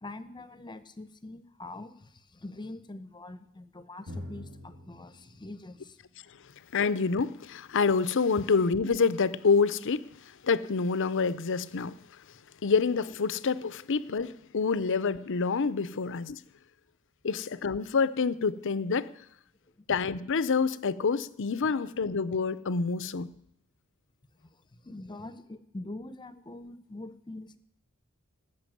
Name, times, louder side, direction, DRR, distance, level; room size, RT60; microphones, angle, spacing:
voice 1, 0.0-6.0 12.6-12.7 17.3-17.4 19.8-19.9 24.4-24.6 24.8-27.6, left 2 dB, 20° left, 0.9 m, -44 dB
Drum, 4.1-7.6, left 1 dB, 65° right, 4.1 m, -46 dB
voice 2, 6.7-10.0 10.4-11.9 12.6-16.4 17.2-19.1 19.9-23.3, left 5 dB, 60° left, 0.6 m, -27 dB
19.5 x 6.8 x 9.2 m
head